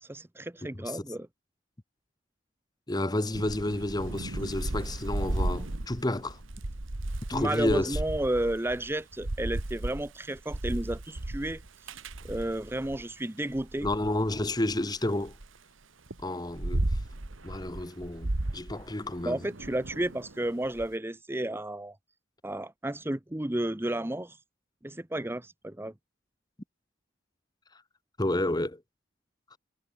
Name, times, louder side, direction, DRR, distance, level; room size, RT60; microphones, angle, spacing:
voice 1, 0.0-1.3 7.3-11.6 11.9-12.0 12.2-13.9 19.2-22.0 22.4-24.4 24.8-25.9, right 1 dB, 10° right, 0.7 m, -32 dB
voice 2, 2.9-6.4 7.3-8.0 13.8-15.3 16.2-16.9 17.4-19.4 28.2-28.8 29.5-29.6, left 1 dB, 20° left, 1.0 m, -30 dB
Thunder / Rain, 3.3-13.0 13.5-15.5 16.1-20.9, right 1 dB, 80° right, 1.6 m, -35 dB
head